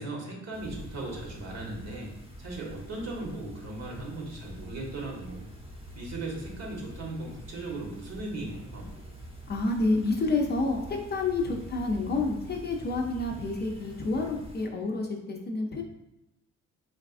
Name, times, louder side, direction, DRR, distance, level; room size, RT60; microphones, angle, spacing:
voice 1, 0.0-2.1 2.4-5.4 6.0-8.9, right 2 dB, 60° right, -1 dB, 1.0 m, -37 dB
sound 1, 0.5-14.7, equal, 20° right, 0.8 m, -46 dB
sound 2, 8.1-14.4, right 1 dB, 80° right, 1.4 m, -50 dB
voice 2, 9.5-15.8, left 3 dB, 35° left, 2 dB, 0.5 m, -29 dB
4.0 x 2.3 x 2.4 m, 0.93 s
cardioid pair, 90°, 30 cm